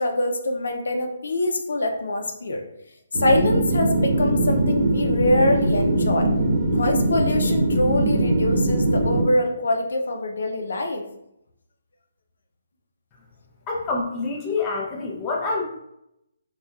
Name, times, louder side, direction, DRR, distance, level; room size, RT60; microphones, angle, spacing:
voice 1, 0.0-2.6 3.1-6.3 6.7-11.0, left 1 dB, 80° left, 3 dB, 0.4 m, -24 dB
sound 1, 3.1-9.2, right 1 dB, 45° right, 0.8 m, -21 dB
voice 2, 13.7-15.6, left 3 dB, 20° left, -2 dB, 0.6 m, -26 dB
4.2 x 2.2 x 2.3 m, 0.82 s
hypercardioid pair, 160°, 0 cm